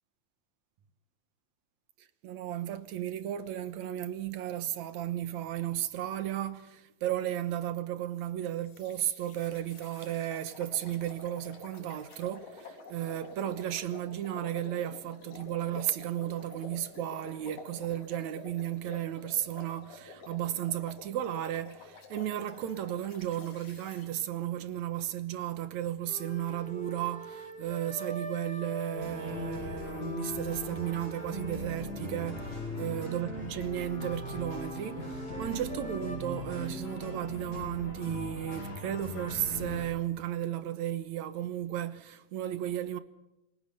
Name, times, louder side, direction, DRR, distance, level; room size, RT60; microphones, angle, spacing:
voice 1, 2.0-43.0, right 12 dB, 65° right, 2.1 m, -34 dB
sound 1, 8.7-24.1, left 4 dB, 60° left, 4.7 m, -49 dB
sound 2, 26.1-36.2, equal, ahead, 3.0 m, -45 dB
sound 3, 29.0-39.9, left 1 dB, 80° left, 9.9 m, -39 dB
28.0 x 19.5 x 5.5 m
omnidirectional pair, 4.0 m